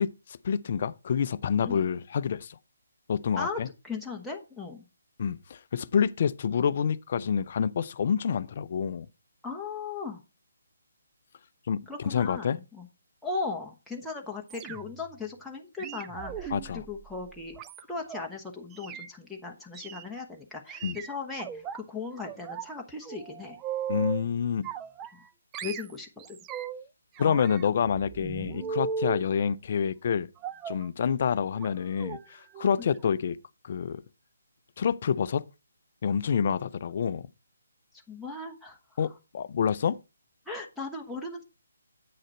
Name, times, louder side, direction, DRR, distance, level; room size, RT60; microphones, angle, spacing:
voice 1, 0.0-2.6 3.1-3.7 5.2-9.1 11.7-12.6 16.5-16.8 20.8-21.0 23.9-24.7 27.2-30.3 30.7-33.4 33.6-34.0 34.8-35.4 36.0-37.3 39.0-40.0, left 7 dB, 45° left, 0.5 m, -28 dB
voice 2, 3.8-4.8 9.4-10.2 11.9-12.9 13.2-23.6 25.6-26.4 32.8-32.9 38.1-39.1 40.5-41.4, left 4 dB, ahead, 1.1 m, -37 dB
sound 1, 14.5-15.1 15.8-18.3 18.7-19.1 19.7-20.0 20.7-21.8 22.2-22.7 23.0-24.2 24.6-25.3 25.5-26.8 27.2-29.2 30.4-30.9 31.5-31.7 32.0-32.2 32.5-32.7 33.0-33.1, right 7 dB, 15° right, 0.5 m, -37 dB
8.8 x 6.4 x 4.2 m
figure-of-eight pair, 145°, 0 cm